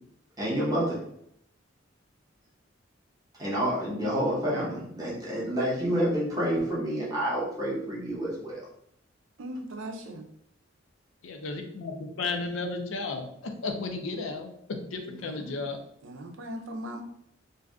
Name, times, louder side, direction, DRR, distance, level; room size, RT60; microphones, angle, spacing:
voice 1, 0.4-1.0 3.4-8.7, equal, 20° right, -6 dB, 0.9 m, -28 dB
voice 2, 9.4-10.3 15.1-15.7 16.0-17.0, right 1 dB, 75° right, 4 dB, 0.5 m, -39 dB
voice 3, 11.2-15.8, left 3 dB, 80° left, 4 dB, 0.5 m, -34 dB
2.6 x 2.4 x 3.4 m, 0.72 s
head